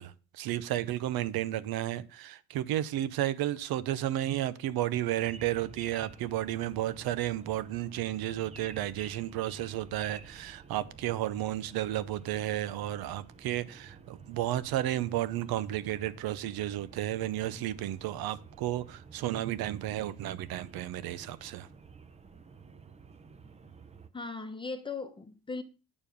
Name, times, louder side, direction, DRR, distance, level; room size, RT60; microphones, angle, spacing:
voice 1, 0.0-21.7, right 13 dB, 80° right, 0.8 m, -32 dB
sound 1, 5.2-24.1, right 5 dB, 20° right, 0.6 m, -52 dB
voice 2, 24.1-25.6, left 4 dB, 15° left, 0.9 m, -38 dB
8.8 x 7.1 x 5.3 m
cardioid pair, 170°, 35 cm